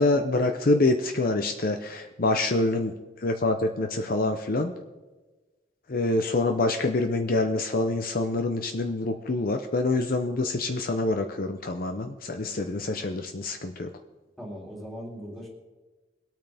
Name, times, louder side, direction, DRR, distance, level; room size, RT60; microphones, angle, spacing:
voice 1, 0.0-2.9 3.2-4.7 5.9-13.9, left 2 dB, 50° left, 6 dB, 0.7 m, -26 dB
voice 2, 14.4-15.5, equal, ahead, -3 dB, 2.8 m, -39 dB
22.5 x 9.0 x 3.5 m, 1.2 s
head